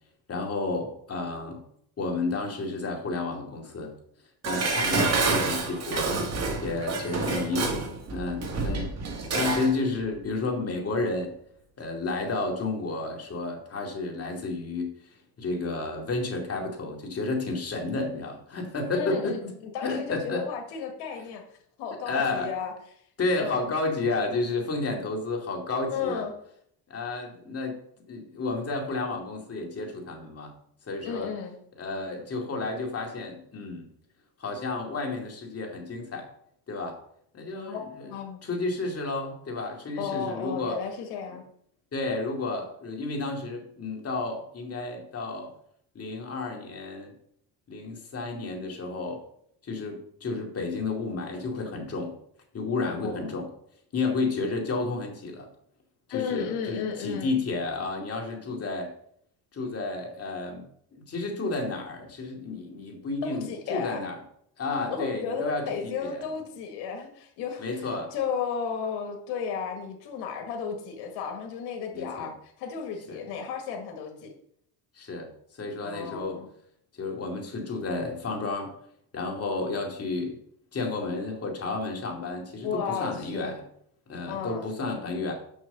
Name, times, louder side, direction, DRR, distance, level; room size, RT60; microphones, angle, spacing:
voice 1, 0.3-1.6 2.0-3.9 4.5-6.1 6.6-8.9 9.3-11.3 11.8-14.9 15.4-19.5 19.8-20.5 22.1-22.5 23.2-26.3 26.9-27.8 28.1-30.5 30.9-31.3 31.8-33.9 34.4-36.3 36.7-37.0 37.3-38.1 38.4-40.8 41.9-45.5 45.9-47.1 47.7-49.2 49.6-52.1 52.5-53.5 53.9-55.5 56.1-58.9 59.5-60.6 60.9-64.2 64.6-66.2 67.6-68.1 71.9-72.3 73.1-73.2 75.0-75.3 75.6-76.4 77.0-78.7 79.1-80.4 80.7-83.6 84.1-85.3, left 3 dB, 35° left, 2 dB, 2.4 m, -31 dB
Dishes pots and pans, 4.4-9.7 10.1-10.2, right 3 dB, 40° right, 1.9 m, -28 dB
voice 2, 18.9-19.4 19.7-21.4 21.8-22.7 23.3-23.7 25.9-26.3 31.0-31.5 37.5-38.4 40.0-41.4 52.9-53.3 56.1-57.4 63.2-64.0 64.9-74.3 75.8-76.5 82.6-83.5 84.2-84.6, left 6 dB, 85° left, 3 dB, 1.7 m, -33 dB
6.3 x 5.9 x 6.7 m, 0.68 s
cardioid pair, 115°, 39 cm